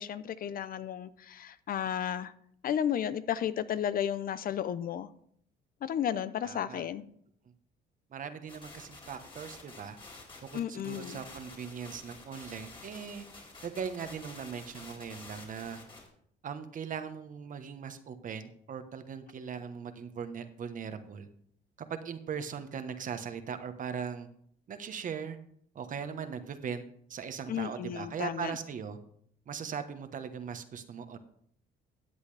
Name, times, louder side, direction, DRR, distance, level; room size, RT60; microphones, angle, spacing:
voice 1, 0.0-2.3 2.6-5.1 5.8-7.0 10.5-11.2 27.5-28.5, left 9 dB, 55° left, 15 dB, 0.6 m, -33 dB
voice 2, 6.4-6.9 8.1-10.0 10.5-13.3 13.6-15.8 16.4-21.3 21.9-24.3 24.7-25.4 25.7-26.8 27.1-29.0 29.5-31.2, right 7 dB, 45° right, 9 dB, 1.2 m, -39 dB
sound 1, 8.5-16.1, left 3 dB, 30° left, 3.8 m, -50 dB
14.0 x 8.2 x 3.4 m, 0.66 s
cardioid pair, 100°, 18 cm